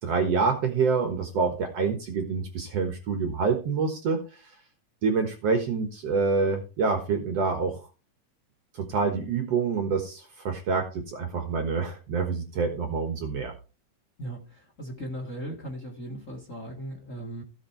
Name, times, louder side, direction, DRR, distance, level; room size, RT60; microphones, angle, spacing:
voice 1, 0.0-4.4 5.0-7.8 8.7-13.5, right 5 dB, 55° right, 5 dB, 2.1 m, -27 dB
voice 2, 14.2-17.4, right 1 dB, 25° left, 2 dB, 2.0 m, -38 dB
16.0 x 5.6 x 4.5 m, 0.33 s
omnidirectional pair, 3.8 m